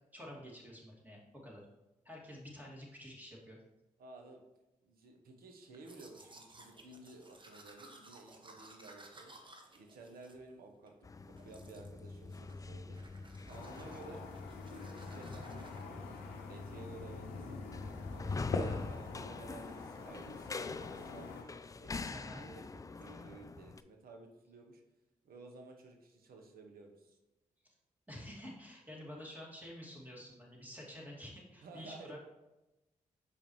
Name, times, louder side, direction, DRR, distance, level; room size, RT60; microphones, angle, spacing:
voice 1, 0.1-1.7 2.0-3.6 18.5-18.8 22.1-22.5 27.6-27.7 28.1-32.2, left 1 dB, 10° right, -3 dB, 2.3 m, -49 dB
voice 2, 4.0-4.4 4.8-9.3 9.7-10.9 11.4-13.0 13.4-14.2 14.7-16.2 16.5-17.6 18.1-21.5 21.8-24.8 25.2-27.2 31.6-32.1, right 3 dB, 70° right, 3 dB, 1.0 m, -54 dB
Domestic sounds home sounds, 5.7-11.0 11.4-12.0 12.3-12.7 12.9-15.8, right 2 dB, 30° right, 1.1 m, -58 dB
sound 1, 11.0-23.8, left 3 dB, 20° left, 0.3 m, -44 dB
sound 2, 13.5-21.4, left 4 dB, 85° left, 0.6 m, -46 dB
6.8 x 5.2 x 3.1 m, 1.0 s
hypercardioid pair, 40°, 16 cm